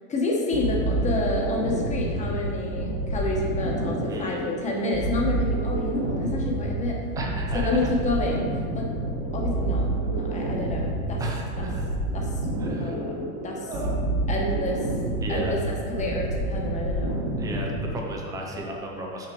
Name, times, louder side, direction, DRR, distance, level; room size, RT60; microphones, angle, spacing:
voice 1, 0.1-7.0 7.5-8.4 8.7-8.9 9.3-11.2 11.6-11.7 12.1-12.4 12.8-13.7 14.3-14.9 15.3-17.2 18.5-18.6, left 2 dB, 15° left, -1 dB, 1.1 m, -29 dB
sound 1, 0.5-18.1, right 2 dB, 35° right, 1.3 m, -28 dB
voice 2, 4.1-4.5 7.2-7.9 10.3-10.4 11.2-11.9 12.6-13.0 13.7-14.0 15.2-15.6 17.4-19.3, right 1 dB, 10° right, 0 dB, 0.3 m, -34 dB
6.1 x 5.8 x 4.6 m, 2.1 s
supercardioid pair, 140°, 44 cm